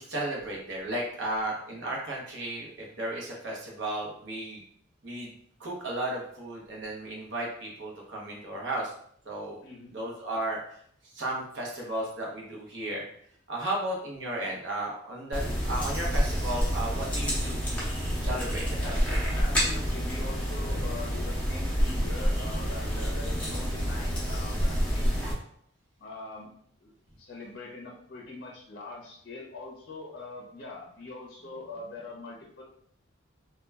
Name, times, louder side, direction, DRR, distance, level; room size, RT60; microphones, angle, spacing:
voice 1, 0.0-4.6 5.0-5.3 5.6-8.9 9.3-9.6 9.9-10.6 11.1-13.0 13.5-17.6 18.1-18.9, right 1 dB, 60° right, -2 dB, 0.7 m, -34 dB
voice 2, 9.6-10.0 18.8-25.2 26.0-26.5 26.8-32.6, left 2 dB, 55° left, -2 dB, 0.5 m, -43 dB
sound 1, 15.3-25.3, equal, 5° left, 0.7 m, -28 dB
2.2 x 2.1 x 3.3 m, 0.65 s
head